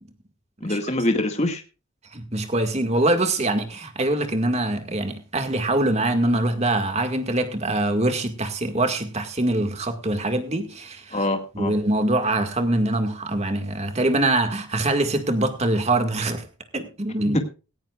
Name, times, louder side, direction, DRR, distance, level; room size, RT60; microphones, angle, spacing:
voice 1, 0.6-1.6 11.1-11.7 17.3-17.4, left 1 dB, 35° left, 1.9 m, -24 dB
voice 2, 2.1-11.2 11.6-16.5 16.7-17.4, right 2 dB, 30° right, 1.9 m, -23 dB
18.0 x 15.0 x 2.4 m
head